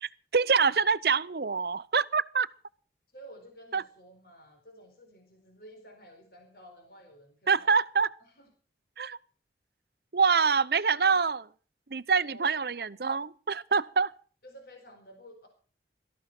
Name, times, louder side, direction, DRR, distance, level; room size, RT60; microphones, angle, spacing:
voice 1, 0.0-2.5 3.7-3.8 7.5-8.1 9.0-9.2 10.1-11.5 11.9-14.1, right 5 dB, 65° right, 0.7 m, -25 dB
voice 2, 3.1-7.8 8.2-8.5 11.0-11.2 12.2-12.5 14.4-15.5, equal, 60° left, 4.0 m, -52 dB
18.0 x 13.5 x 5.9 m
head